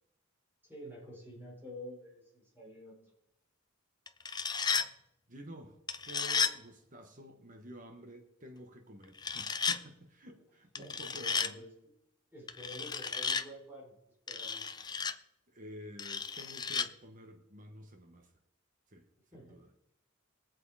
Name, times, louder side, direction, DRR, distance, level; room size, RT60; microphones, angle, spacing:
voice 1, 0.7-3.1 10.8-11.9 12.3-14.0 14.3-14.6 19.3-19.6, equal, 10° right, -4 dB, 4.6 m, -49 dB
sound 1, 4.1-4.9 5.9-6.6 9.2-9.8 10.8-11.5 12.5-13.5 14.3-15.1 16.0-16.9, left 5 dB, 20° left, 0.5 m, -33 dB
voice 2, 5.3-5.8 6.0-11.6 15.5-18.3 18.9-19.0 19.3-19.7, equal, 40° right, 5 dB, 1.3 m, -50 dB
21.0 x 7.8 x 4.9 m, 0.83 s
head